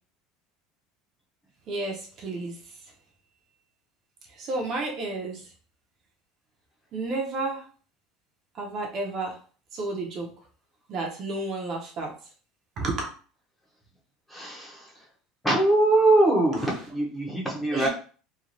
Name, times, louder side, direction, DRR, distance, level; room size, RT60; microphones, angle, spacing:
voice 1, 1.7-2.6 4.3-5.4 6.9-7.6 8.6-9.4 9.7-10.3 10.9-12.1 12.8-13.1 16.5-16.7 17.7-17.9, right 2 dB, 35° right, 0 dB, 0.6 m, -31 dB
voice 2, 14.3-14.9 15.4-17.9, right 2 dB, 5° left, -3 dB, 0.7 m, -22 dB
3.0 x 2.3 x 2.5 m, 0.40 s
cardioid pair, 160°, 0 cm